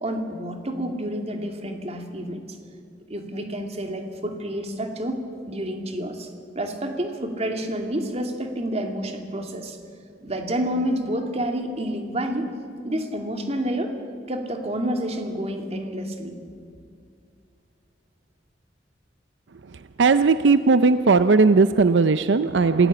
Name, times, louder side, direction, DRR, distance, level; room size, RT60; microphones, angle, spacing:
voice 1, 0.0-2.4 3.1-6.3 6.5-9.8 10.2-12.5 12.8-13.9 14.3-16.4, right 1 dB, 35° right, 4 dB, 2.6 m, -29 dB
voice 2, 20.0-22.9, right 4 dB, 80° right, 12 dB, 0.6 m, -17 dB
26.5 x 16.5 x 8.7 m, 2.3 s
head